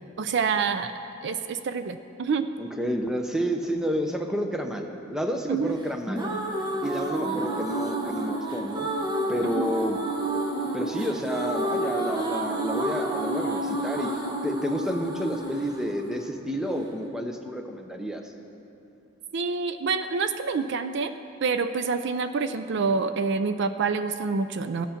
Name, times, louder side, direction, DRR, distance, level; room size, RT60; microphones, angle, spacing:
voice 1, 0.2-0.9 1.2-2.5 5.5-5.8 9.4-9.7 19.3-21.1 21.4-24.9, right 5 dB, 55° right, 10 dB, 0.4 m, -27 dB
voice 2, 2.6-6.3 6.8-8.9 9.3-10.0 10.7-14.1 14.4-18.3, equal, ahead, 4 dB, 0.7 m, -30 dB
sound 1, 5.8-16.9, right 1 dB, 20° right, 1.1 m, -30 dB
14.5 x 8.2 x 5.8 m, 2.7 s
head